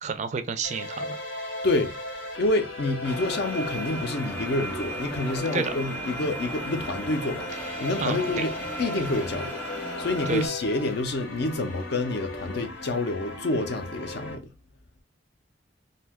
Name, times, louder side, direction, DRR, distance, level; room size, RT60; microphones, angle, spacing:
voice 1, 0.0-1.2 5.5-5.7 8.0-8.4 10.3-10.5, right 5 dB, 40° right, 0.3 m, -30 dB
sound 1, 0.6-14.4, left 2 dB, 85° left, 0.9 m, -37 dB
voice 2, 2.4-8.5 8.8-9.6 10.0-14.5, left 2 dB, 60° left, 0.5 m, -28 dB
sound 2, 3.0-10.5, right 1 dB, 10° left, 0.7 m, -36 dB
2.6 x 2.2 x 3.4 m
head